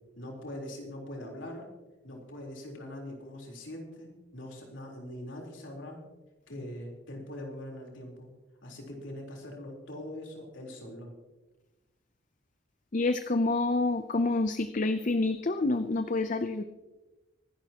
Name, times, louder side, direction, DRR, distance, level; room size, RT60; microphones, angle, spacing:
voice 1, 0.2-1.7 2.0-6.0 6.5-8.3 8.6-11.1, left 1 dB, 70° left, 0 dB, 3.9 m, -42 dB
voice 2, 12.9-16.6, left 2 dB, 40° left, 10 dB, 0.6 m, -28 dB
24.5 x 12.0 x 2.9 m, 1.1 s
head